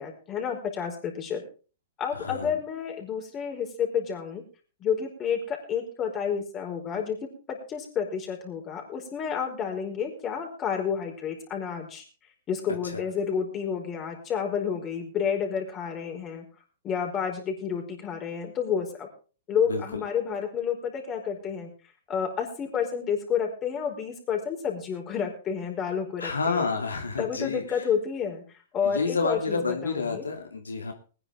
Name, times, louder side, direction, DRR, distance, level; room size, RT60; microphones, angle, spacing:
voice 1, 0.0-1.4 2.0-4.4 4.8-7.2 7.5-12.0 12.5-16.5 16.8-19.1 19.5-21.7 22.1-26.7 27.2-28.4 28.7-30.2, left 7 dB, 25° left, 2 dB, 4.7 m, -30 dB
voice 2, 2.1-2.6 12.8-13.0 19.6-20.0 26.2-27.9 28.8-30.9, left 4 dB, 90° left, 3 dB, 2.7 m, -30 dB
20.5 x 10.0 x 3.7 m, 0.36 s
hypercardioid pair, 115°, 0 cm